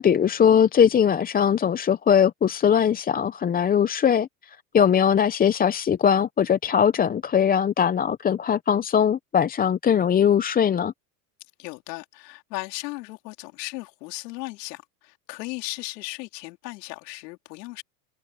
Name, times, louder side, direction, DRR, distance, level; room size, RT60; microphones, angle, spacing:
voice 1, 0.0-10.9, left 8 dB, 20° left, 0.6 m, -21 dB
voice 2, 11.6-17.8, left 22 dB, 75° left, 3.5 m, -36 dB
supercardioid pair, 110°, 49 cm